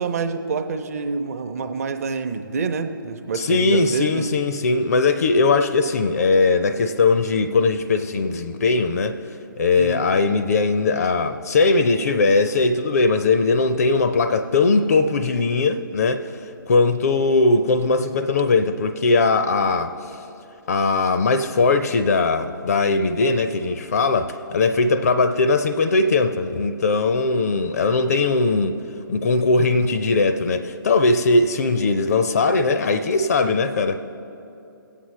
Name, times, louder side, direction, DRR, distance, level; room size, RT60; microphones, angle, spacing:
voice 1, 0.0-4.3 9.8-10.1, right 5 dB, 45° right, 7 dB, 0.7 m, -27 dB
voice 2, 3.3-9.2 9.6-16.4 16.7-20.0 20.7-28.8 29.1-34.0, left 3 dB, 45° left, 10 dB, 0.4 m, -20 dB
20.5 x 8.3 x 3.1 m, 2.8 s
figure-of-eight pair, 135°, 12 cm